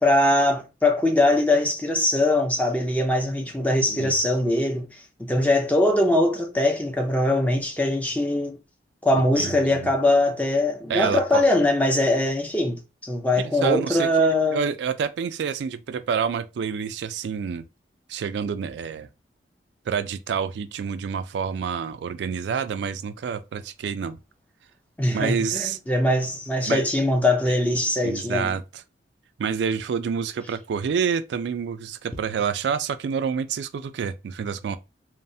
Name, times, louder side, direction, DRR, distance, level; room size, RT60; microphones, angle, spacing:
voice 1, 0.0-4.9 5.2-8.6 9.0-14.7 25.0-28.6, left 1 dB, 10° left, 0.4 m, -22 dB
voice 2, 9.3-9.9 10.9-11.4 13.6-17.7 18.1-19.1 19.9-24.2 25.1-25.8 26.7-26.8 27.5-27.6 28.0-28.8 29.4-34.8, right 6 dB, 80° right, 0.3 m, -28 dB
3.1 x 2.0 x 2.6 m
head